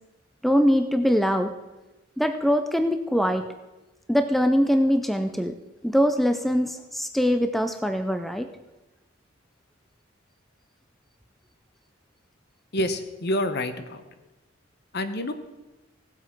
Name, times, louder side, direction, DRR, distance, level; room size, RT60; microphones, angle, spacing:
voice 1, 0.4-1.5 2.2-3.5 4.1-5.6 5.8-8.5, equal, ahead, 8 dB, 0.4 m, -22 dB
voice 2, 12.7-14.0 14.9-15.3, left 1 dB, 55° left, 10 dB, 1.0 m, -27 dB
17.0 x 7.9 x 4.6 m, 1.1 s
head